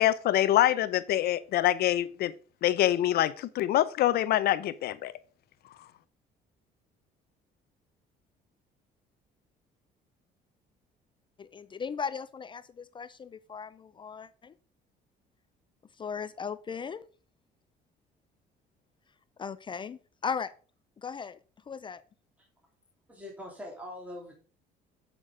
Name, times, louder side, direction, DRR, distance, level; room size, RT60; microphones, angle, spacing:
voice 1, 0.0-2.3 2.6-5.1, left 13 dB, 65° left, 0.6 m, -25 dB
voice 2, 11.4-14.5 16.0-17.1 19.4-20.5 21.0-21.4 21.7-22.0, left 6 dB, 30° left, 0.4 m, -37 dB
voice 3, 23.1-24.3, left 1 dB, 10° right, 3.2 m, -42 dB
8.0 x 5.9 x 4.9 m
cardioid pair, 110°, 17 cm